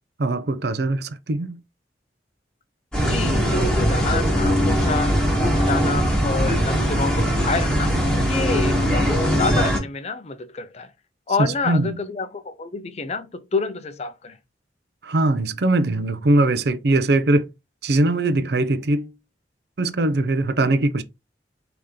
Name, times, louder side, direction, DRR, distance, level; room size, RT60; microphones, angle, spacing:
voice 1, 0.2-1.6 11.4-12.0 15.0-17.5 17.8-19.1 19.8-21.0, right 2 dB, 60° right, 0.5 m, -21 dB
sound 1, 2.9-9.8, equal, 5° left, 1.3 m, -20 dB
voice 2, 3.1-8.0 8.3-10.9 11.3-14.4, left 4 dB, 35° left, 0.5 m, -28 dB
5.0 x 2.9 x 3.6 m
head